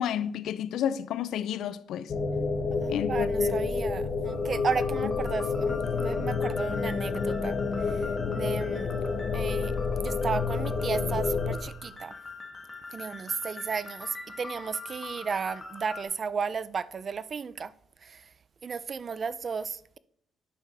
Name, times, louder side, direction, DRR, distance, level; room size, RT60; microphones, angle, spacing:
voice 1, 0.0-2.1 2.9-3.5, left 9 dB, 80° left, 0.4 m, -31 dB
sound 1, 2.1-11.6, left 4 dB, 55° left, 1.0 m, -29 dB
voice 2, 2.8-8.1 8.3-8.9 9.3-12.2 12.9-17.7 18.0-18.3 18.6-20.0, right 5 dB, 45° right, 0.4 m, -34 dB
sound 2, 4.3-16.0, left 3 dB, 30° left, 1.6 m, -44 dB
9.9 x 6.3 x 3.4 m
cardioid pair, 90°, 0 cm